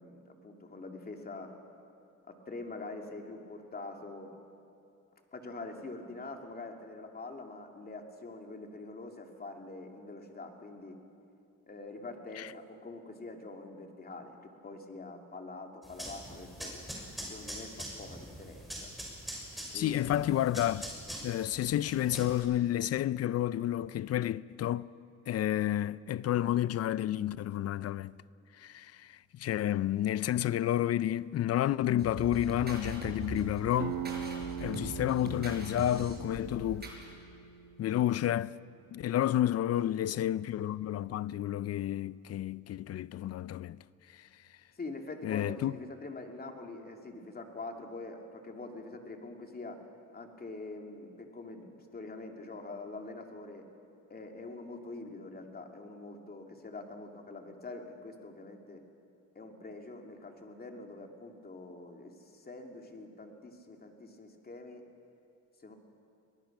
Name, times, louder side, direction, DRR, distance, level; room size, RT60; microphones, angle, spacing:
voice 1, 0.0-1.5 2.3-4.3 5.3-11.0 11.7-14.4 14.6-16.7 17.2-18.7 19.7-20.4 39.9-40.2 44.8-49.8 50.1-53.6 54.1-58.8 59.3-64.8 65.6-65.7, left 3 dB, 30° left, 2.7 m, -45 dB
sound 1, 15.8-22.4, equal, ahead, 6.5 m, -44 dB
voice 2, 19.7-20.9 21.2-24.9 25.3-28.1 28.6-34.0 34.6-36.9 37.8-38.5 38.9-43.8 45.2-45.7, left 12 dB, 55° left, 0.5 m, -30 dB
sound 2, 32.0-37.1, right 4 dB, 35° right, 5.1 m, -42 dB
sound 3, 33.8-39.2, right 8 dB, 75° right, 1.6 m, -42 dB
24.0 x 19.5 x 6.1 m
cardioid pair, 90°, 30 cm